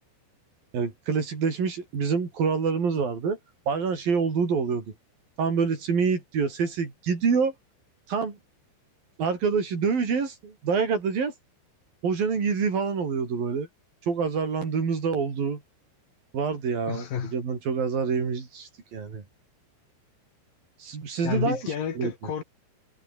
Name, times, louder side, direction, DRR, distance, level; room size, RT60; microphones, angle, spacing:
voice 1, 0.7-3.4 3.7-4.8 5.4-7.5 8.1-8.4 9.2-11.3 12.0-13.7 14.1-15.6 16.3-19.2 20.8-21.6 22.0-22.1, right 5 dB, 50° right, 6.3 m, -26 dB
voice 2, 16.9-17.3 21.2-22.4, left 8 dB, 50° left, 3.7 m, -30 dB
omnidirectional pair, 5.6 m